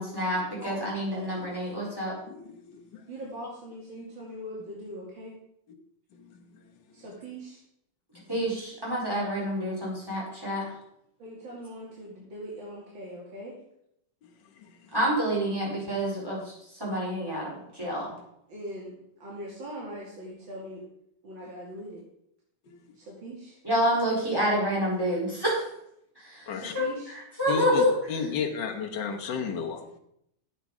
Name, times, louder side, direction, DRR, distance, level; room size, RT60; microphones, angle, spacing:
voice 1, 0.0-2.1 8.3-10.6 14.9-16.5 16.8-18.1 23.6-25.7 26.2-27.9, equal, 10° right, -5 dB, 4.6 m, -28 dB
voice 2, 2.3-3.0 6.1-6.6 8.1-8.3 14.6-14.9 22.7-22.8 26.5-26.7 27.5-30.0, left 6 dB, 70° left, 2 dB, 1.8 m, -34 dB
voice 3, 3.1-5.3 6.9-7.6 11.2-13.5 18.5-18.9 19.2-20.8 21.2-22.0 23.0-23.5 26.5-27.1, equal, 90° right, -5 dB, 3.2 m, -41 dB
12.0 x 8.3 x 4.9 m, 0.75 s
omnidirectional pair, 2.1 m